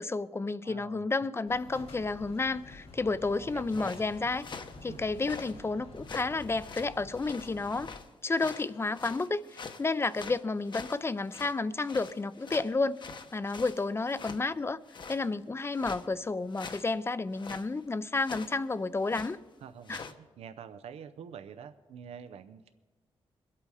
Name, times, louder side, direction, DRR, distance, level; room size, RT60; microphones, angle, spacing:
voice 1, 0.0-4.5 4.8-7.9 8.2-13.0 13.3-14.8 15.1-19.4 19.9-20.0, left 3 dB, 25° left, 17 dB, 0.5 m, -31 dB
voice 2, 0.6-1.1 3.4-4.1 4.9-5.1 10.3-10.4 19.6-22.7, right 7 dB, 85° right, 10 dB, 0.6 m, -47 dB
sound 1, 1.5-7.9, left 2 dB, 75° left, 3.2 m, -49 dB
sound 2, 3.5-5.6 6.0-8.1 8.4-11.6 11.8-14.4 14.9-15.3 15.7-16.1 16.5-16.9 17.3-17.7 18.2-18.6 19.0-19.4 19.9-20.1, left 5 dB, 50° left, 1.0 m, -44 dB
22.0 x 8.6 x 4.9 m, 1.2 s
cardioid pair, 80°, 10 cm